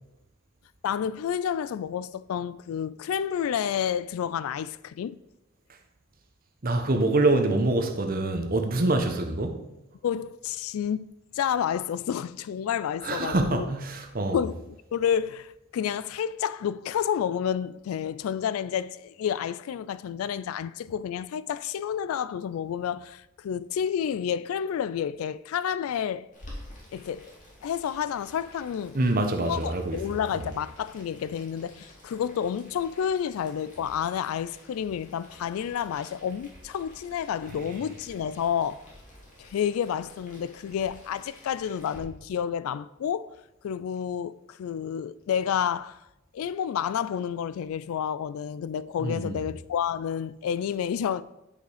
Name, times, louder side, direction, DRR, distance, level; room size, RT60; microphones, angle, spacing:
voice 1, 0.8-5.2 10.0-11.1 11.3-13.7 14.3-26.3 26.9-27.3 27.6-29.0 29.4-38.9 39.4-43.3 43.6-46.0 46.3-51.2, left 8 dB, 85° left, 0.3 m, -30 dB
voice 2, 6.6-9.6 13.0-14.4 28.9-30.0 30.3-30.4 49.0-49.4, right 2 dB, 45° right, 0.9 m, -25 dB
Boiling, 26.3-42.0, left 1 dB, 35° left, 2.5 m, -50 dB
9.2 x 5.2 x 4.9 m
head